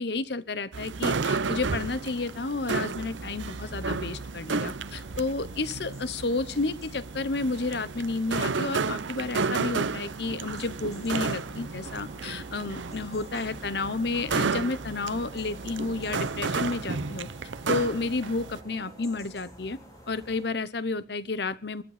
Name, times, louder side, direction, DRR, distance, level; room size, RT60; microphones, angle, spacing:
voice 1, 0.0-17.3 17.7-19.8 20.1-21.8, left 3 dB, 60° left, 16 dB, 0.9 m, -31 dB
sound 1, 0.7-18.6, right 4 dB, 80° right, 0.7 m, -32 dB
sound 2, 1.7-20.6, equal, 20° left, 5.7 m, -51 dB
sound 3, 10.9-19.2, right 1 dB, 30° right, 4.1 m, -51 dB
24.5 x 10.5 x 5.0 m, 0.38 s
head